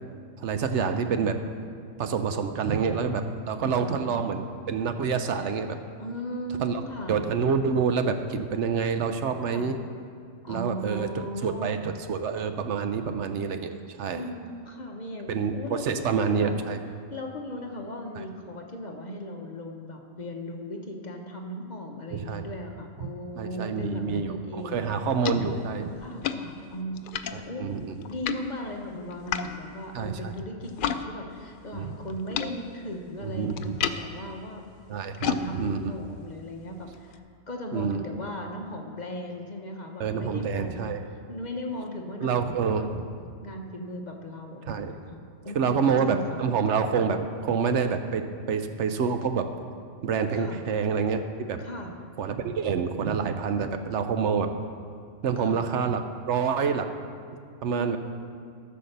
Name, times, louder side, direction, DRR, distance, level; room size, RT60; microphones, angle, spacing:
voice 1, 0.4-1.4 2.0-5.8 6.6-6.8 7.1-9.8 10.5-14.2 15.3-16.8 22.1-22.5 23.0-23.1 23.4-25.9 27.3-27.9 29.9-30.3 31.7-31.9 33.3-33.8 34.9-35.8 37.7-38.1 40.0-41.0 42.2-43.0 44.7-44.9 45.5-49.5 50.0-51.2 51.5-51.6 52.2-54.6 55.2-56.9 57.6-58.0, right 6 dB, 70° right, 8 dB, 1.0 m, -27 dB
voice 2, 6.0-7.3 9.5-9.8 10.4-11.8 14.1-16.6 17.1-24.9 26.0-27.7 28.1-34.6 35.2-37.2 37.5-40.9 41.3-42.9 43.4-46.4 50.3-50.6 51.6-51.9 55.4-55.6 57.8-58.0, equal, 40° left, 2 dB, 1.0 m, -37 dB
sound 1, 24.6-31.0 31.3-37.2, left 8 dB, 60° left, 0.5 m, -36 dB
14.0 x 5.7 x 6.6 m, 2.2 s
omnidirectional pair, 1.3 m